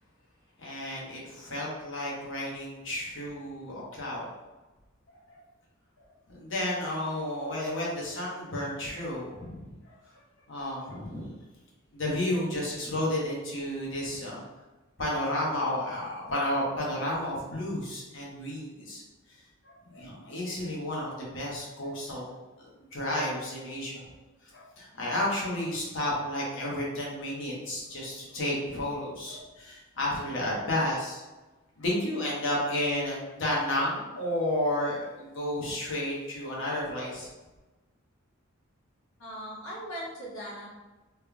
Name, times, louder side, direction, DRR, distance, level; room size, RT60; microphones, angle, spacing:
voice 1, 0.6-4.3 5.3-5.4 6.0-9.9 10.5-11.3 11.9-14.4 15.0-19.0 19.3-19.4 19.6-22.4 22.9-24.1 24.5-31.2 31.8-37.3, left 1 dB, 65° left, -4 dB, 1.0 m, -32 dB
voice 2, 39.2-40.7, equal, 85° left, -5 dB, 1.1 m, -39 dB
3.5 x 3.2 x 2.3 m, 1.1 s
head